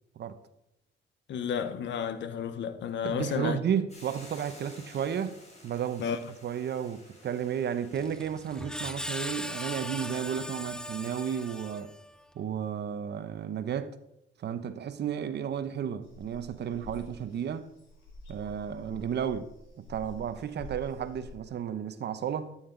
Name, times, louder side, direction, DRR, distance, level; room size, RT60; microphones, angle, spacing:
voice 1, 1.3-3.6 6.0-6.2, left 7 dB, 65° left, 1.0 m, -32 dB
voice 2, 3.0-6.0 6.4-11.9 12.3-13.9 14.4-17.7 18.3-19.5 19.8-22.5, right 8 dB, 60° right, 0.9 m, -33 dB
Hiss / Boiling, 3.9-11.7, left 1 dB, 35° left, 3.9 m, -55 dB
Screech, 7.9-12.2, left 1 dB, 5° left, 0.5 m, -39 dB
sound 1, 16.0-21.3, left 1 dB, 85° left, 4.3 m, -48 dB
13.0 x 8.9 x 3.9 m
cardioid pair, 90°, 20 cm